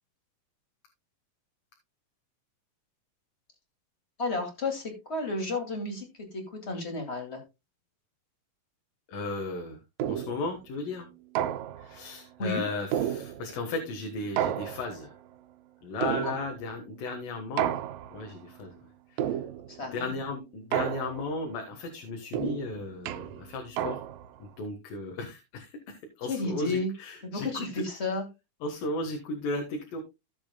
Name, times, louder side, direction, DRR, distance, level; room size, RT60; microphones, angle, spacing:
voice 1, 4.2-6.1 6.3-7.4 12.4-12.6 16.2-16.3 19.7-20.1 26.3-26.9 27.3-28.3, left 2 dB, 20° left, 4 dB, 2.0 m, -32 dB
voice 2, 9.1-9.8 10.1-11.1 11.8-15.1 15.8-17.8 18.1-18.7 19.9-24.0 24.4-27.8 28.6-30.0, left 3 dB, 75° left, 4 dB, 3.1 m, -35 dB
sound 1, 10.0-10.5 11.4-12.0 12.9-13.7 14.4-15.2 16.0-16.7 17.6-18.3 19.2-19.8 20.7-21.4 22.3-24.4, right 11 dB, 80° right, 2.3 m, -32 dB
16.0 x 7.2 x 2.2 m, 0.23 s
omnidirectional pair, 4.0 m